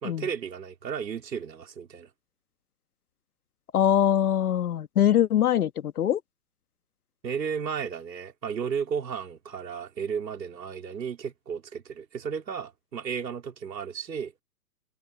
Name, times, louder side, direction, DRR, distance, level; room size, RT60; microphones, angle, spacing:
voice 1, 0.0-2.1 7.2-14.3, right 7 dB, 85° right, 4.0 m, -34 dB
voice 2, 3.7-6.2, left 10 dB, 60° left, 1.5 m, -23 dB
hypercardioid pair, 165°, 49 cm